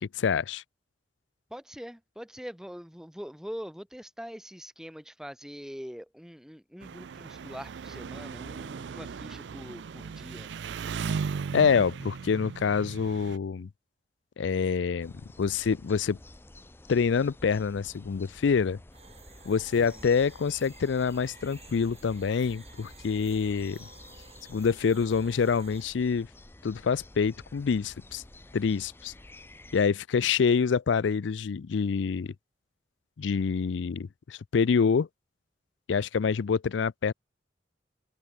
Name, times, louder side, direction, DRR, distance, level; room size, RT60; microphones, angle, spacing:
voice 1, 0.0-0.6 11.5-13.7 14.4-16.2 16.9-18.8 19.5-23.9 24.5-26.3 26.6-28.2 28.5-29.1 29.7-32.3 33.2-35.1 35.9-37.1, left 6 dB, 80° left, 0.4 m, -26 dB
voice 2, 1.5-10.5 19.7-20.2, equal, 5° right, 2.4 m, -43 dB
Engine, 6.8-13.4, right 5 dB, 70° right, 0.4 m, -37 dB
sound 1, 15.0-29.8, left 1 dB, 10° left, 0.6 m, -51 dB
sound 2, 18.9-25.8, right 6 dB, 35° right, 7.6 m, -54 dB
open air
head